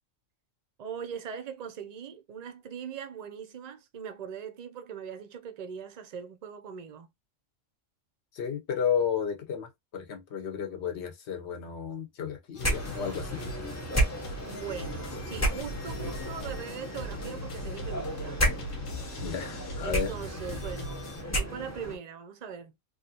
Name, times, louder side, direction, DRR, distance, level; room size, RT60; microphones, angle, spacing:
voice 1, 0.8-7.1 14.4-18.4 19.8-21.0 21.3-22.7, right 7 dB, 55° right, 0.4 m, -40 dB
voice 2, 8.3-13.4 19.2-20.1, left 7 dB, 60° left, 1.1 m, -32 dB
sound 1, 12.5-21.2, equal, 80° left, 1.2 m, -41 dB
sound 2, 12.6-22.0, right 1 dB, 20° left, 0.5 m, -33 dB
3.1 x 2.5 x 2.7 m
omnidirectional pair, 1.3 m